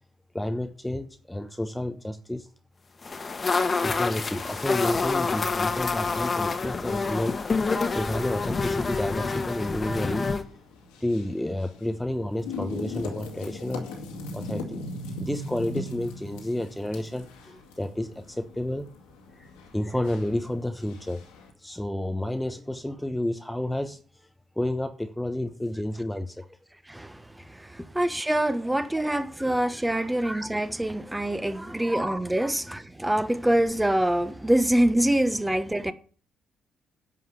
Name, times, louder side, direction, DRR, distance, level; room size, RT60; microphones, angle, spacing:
voice 1, 0.3-2.5 3.7-7.4 7.9-10.3 11.0-13.9 14.3-14.8 15.2-18.9 19.4-19.5 19.7-21.2 21.6-24.0 24.6-26.4 27.8-27.9 28.7-28.8 29.1-29.3 29.9-30.1 31.0-32.1 32.4-32.5 35.8-35.9, left 1 dB, 10° left, 1.0 m, -31 dB
sound 1, 3.0-10.4, left 4 dB, 40° left, 1.5 m, -27 dB
sound 2, 10.1-21.5, left 2 dB, 80° left, 2.3 m, -40 dB
voice 2, 26.9-27.2 27.5-35.9, right 1 dB, 10° right, 1.3 m, -25 dB
10.5 x 5.7 x 6.8 m
hypercardioid pair, 45°, 0 cm